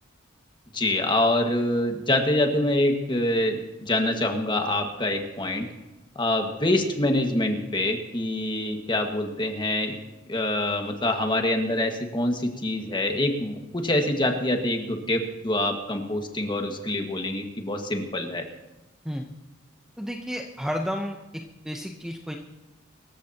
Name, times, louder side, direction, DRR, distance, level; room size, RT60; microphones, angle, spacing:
voice 1, 0.7-5.7 6.2-10.0 10.3-18.5, left 1 dB, 25° left, 3 dB, 1.7 m, -25 dB
voice 2, 20.0-22.4, equal, 5° right, 2 dB, 0.8 m, -32 dB
25.5 x 14.5 x 2.9 m, 1.1 s
head